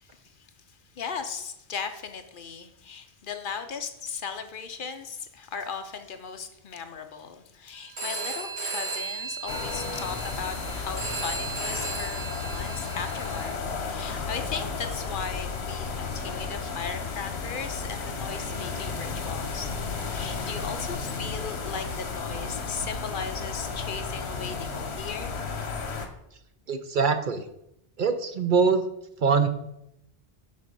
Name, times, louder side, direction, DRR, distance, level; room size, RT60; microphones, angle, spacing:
voice 1, 0.0-0.5 0.9-19.7 20.0-25.3, left 6 dB, 55° left, 8 dB, 0.8 m, -37 dB
Telephone, 8.0-13.5, right 3 dB, 90° right, 1.9 m, -35 dB
sound 1, 9.5-26.1, left 4 dB, 80° left, 1.2 m, -33 dB
voice 2, 26.7-27.5 28.0-28.8 29.2-29.5, right 5 dB, 55° right, 9 dB, 0.7 m, -23 dB
7.5 x 4.3 x 5.2 m, 0.80 s
omnidirectional pair, 1.1 m